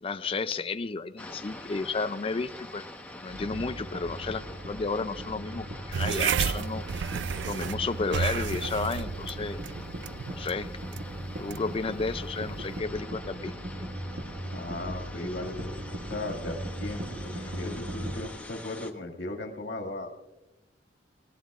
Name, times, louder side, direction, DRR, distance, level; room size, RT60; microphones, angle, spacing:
voice 1, 0.0-2.8 3.2-6.8 7.5-9.6 10.3-10.7 11.4-13.5, left 4 dB, 30° left, 11 dB, 0.4 m, -32 dB
sound 1, 1.2-18.9, left 1 dB, 10° left, 1.1 m, -45 dB
sound 2, 3.3-18.3, right 1 dB, 65° right, 1.2 m, -39 dB
sound 3, 5.9-12.8, right 7 dB, 85° right, 0.4 m, -33 dB
voice 2, 14.4-15.8 16.1-20.1, left 2 dB, 80° left, 3 dB, 2.1 m, -37 dB
19.5 x 19.0 x 2.5 m, 0.99 s
head